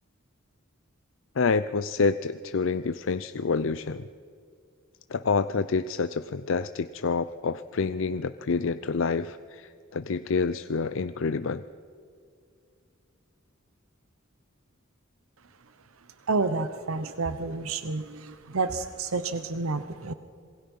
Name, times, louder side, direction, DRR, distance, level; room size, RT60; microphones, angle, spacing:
voice 1, 1.4-4.0 5.1-11.6, left 4 dB, 65° left, 13 dB, 0.5 m, -27 dB
voice 2, 16.3-20.1, right 3 dB, 90° right, 11 dB, 0.9 m, -29 dB
27.0 x 21.0 x 5.5 m, 2.4 s
head